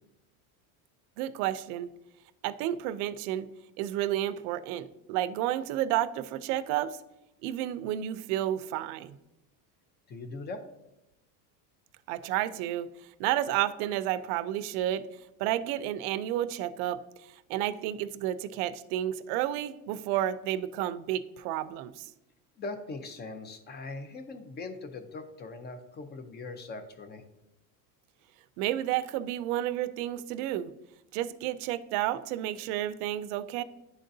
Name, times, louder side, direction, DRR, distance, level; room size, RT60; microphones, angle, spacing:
voice 1, 1.2-1.9 2.4-3.5 3.8-7.0 7.4-9.2 12.1-12.9 13.2-15.0 15.4-17.0 17.5-22.1 28.6-30.7 31.1-33.6, right 12 dB, 70° right, 13 dB, 0.5 m, -31 dB
voice 2, 10.1-10.7 20.1-20.3 22.6-27.2, left 3 dB, 20° left, 9 dB, 0.6 m, -41 dB
10.5 x 3.7 x 2.7 m, 0.91 s
supercardioid pair, 130°, 46 cm